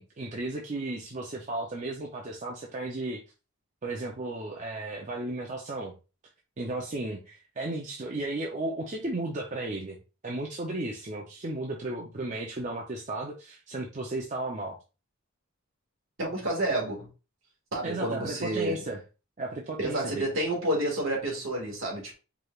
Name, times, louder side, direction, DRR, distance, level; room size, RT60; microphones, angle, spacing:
voice 1, 0.0-3.2 3.8-6.0 6.6-10.0 10.2-14.8 17.8-19.0 19.4-20.3, right 2 dB, 35° right, 0.5 m, -34 dB
voice 2, 16.2-17.1 17.7-18.8 19.8-22.2, right 1 dB, 60° right, 1.7 m, -29 dB
4.8 x 3.2 x 2.3 m
head